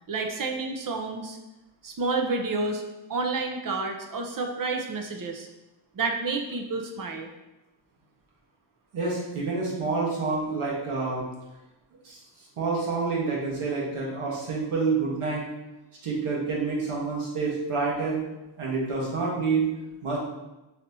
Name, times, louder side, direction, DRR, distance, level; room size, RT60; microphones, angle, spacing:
voice 1, 0.1-1.4 1.8-2.8 3.1-5.5 5.9-7.3, right 3 dB, 40° right, 2 dB, 0.6 m, -29 dB
voice 2, 8.9-11.2 12.0-12.2 12.6-15.4 16.0-18.3 18.6-19.7 20.0-20.2, right 4 dB, 85° right, -4 dB, 1.3 m, -28 dB
4.1 x 3.2 x 2.7 m, 1.0 s
cardioid pair, 70°, 49 cm